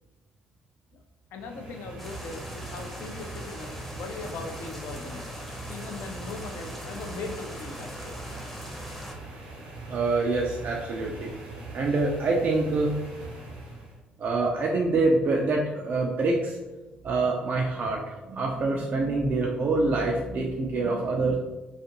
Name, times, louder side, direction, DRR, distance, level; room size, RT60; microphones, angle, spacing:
voice 1, 1.3-5.2 5.7-8.2, left 3 dB, 65° left, 4 dB, 0.4 m, -39 dB
sound 1, 1.3-14.0, right 2 dB, 80° right, 0.7 m, -41 dB
sound 2, 2.0-9.1, equal, 5° left, 0.6 m, -41 dB
voice 2, 9.9-11.3 11.7-12.9 14.2-16.6 17.0-21.4, right 3 dB, 50° right, -2 dB, 0.4 m, -26 dB
2.4 x 2.4 x 2.8 m, 1.1 s
hypercardioid pair, 45°, 4 cm